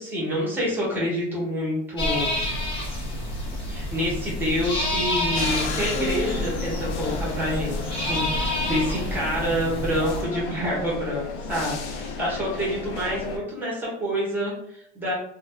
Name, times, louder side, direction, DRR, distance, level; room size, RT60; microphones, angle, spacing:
voice 1, 0.0-2.4 3.7-15.1, equal, 5° right, -5 dB, 0.9 m, -27 dB
sound 1, 2.0-10.2, left 1 dB, 15° left, 0.5 m, -29 dB
sound 2, 5.3-13.4, left 4 dB, 75° left, 0.6 m, -34 dB
sound 3, 5.9-9.7, left 1 dB, 45° right, 0.7 m, -39 dB
2.5 x 2.3 x 3.3 m, 0.74 s
supercardioid pair, 165°, 35 cm